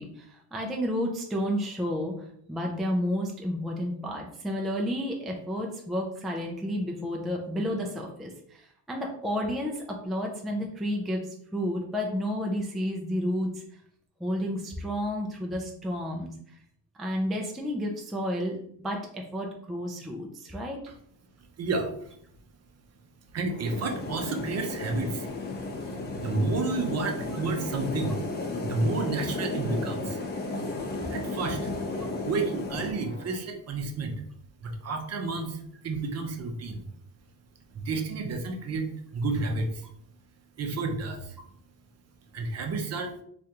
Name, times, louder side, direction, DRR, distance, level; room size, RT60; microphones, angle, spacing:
voice 1, 0.0-2.2 2.5-11.2 11.5-13.6 14.2-16.6 17.0-18.6 18.8-20.8, equal, ahead, 0 dB, 0.3 m, -31 dB
voice 2, 21.6-22.2 23.3-25.3 25.8-28.2 28.6-30.2 31.1-31.7 32.2-34.2 34.6-36.9 37.7-38.9 39.1-39.9 40.6-41.4 42.3-43.1, right 3 dB, 40° right, 4 dB, 0.6 m, -31 dB
Engine, 23.5-33.4, left 5 dB, 90° left, 0.6 m, -47 dB
sound 1, 23.6-32.9, left 2 dB, 25° left, 0.7 m, -34 dB
3.3 x 2.5 x 2.8 m, 0.66 s
cardioid pair, 110°, 38 cm